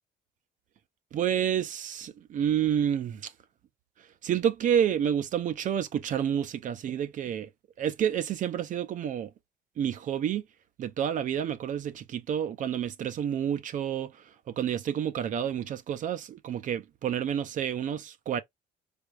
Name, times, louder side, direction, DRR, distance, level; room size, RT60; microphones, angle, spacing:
voice 1, 1.1-3.3 4.2-7.5 7.8-9.3 9.8-10.4 10.8-14.1 14.5-18.4, right 9 dB, 50° right, 0.5 m, -29 dB
4.2 x 3.4 x 2.3 m
cardioid pair, 110°, 17 cm